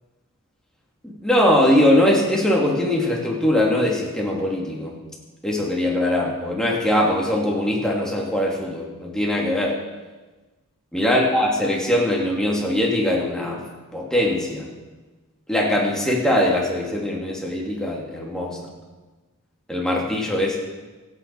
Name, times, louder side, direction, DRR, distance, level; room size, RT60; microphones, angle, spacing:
voice 1, 1.0-4.9 5.4-9.8 10.9-13.6 13.9-14.7 15.5-18.6 19.7-20.6, left 1 dB, 5° left, -3 dB, 2.7 m, -21 dB
26.5 x 8.9 x 4.8 m, 1.3 s
head